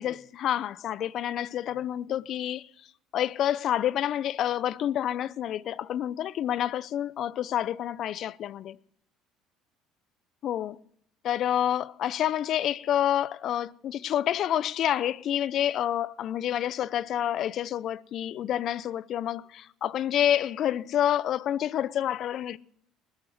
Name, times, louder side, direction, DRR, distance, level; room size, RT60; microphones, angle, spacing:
voice 1, 0.0-2.6 3.1-8.8 10.4-10.8 11.2-22.6, left 11 dB, 55° left, 0.5 m, -28 dB
20.0 x 7.4 x 7.2 m
supercardioid pair, 95°, 0 cm